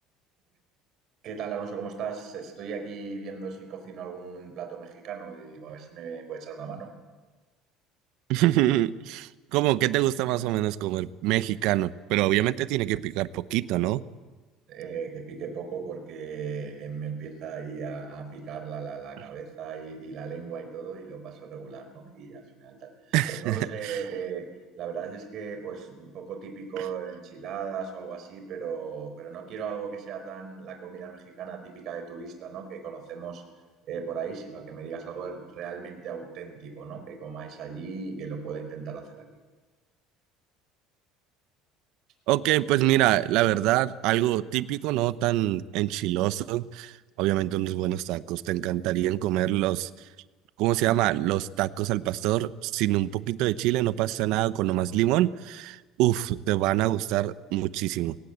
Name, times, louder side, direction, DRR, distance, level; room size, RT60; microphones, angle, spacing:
voice 1, 1.2-6.9 14.7-24.5 24.7-33.4 33.9-39.3, right 6 dB, 45° right, 6 dB, 4.3 m, -37 dB
voice 2, 8.3-14.0 23.1-24.0 42.3-49.9 50.6-58.2, right 15 dB, 65° right, 16 dB, 0.7 m, -25 dB
22.5 x 17.5 x 8.1 m, 1.3 s
cardioid pair, 160°, 0 cm